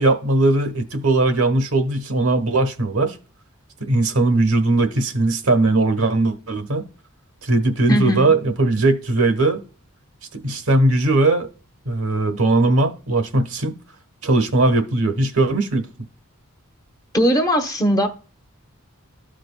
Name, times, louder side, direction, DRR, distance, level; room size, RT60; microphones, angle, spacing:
voice 1, 0.0-3.2 3.8-6.8 7.4-9.6 10.3-11.5 11.8-13.7 14.2-15.9, right 2 dB, 75° right, 1.2 m, -19 dB
voice 2, 7.9-8.3 17.1-18.1, equal, 15° left, 0.8 m, -19 dB
13.0 x 5.1 x 2.2 m
head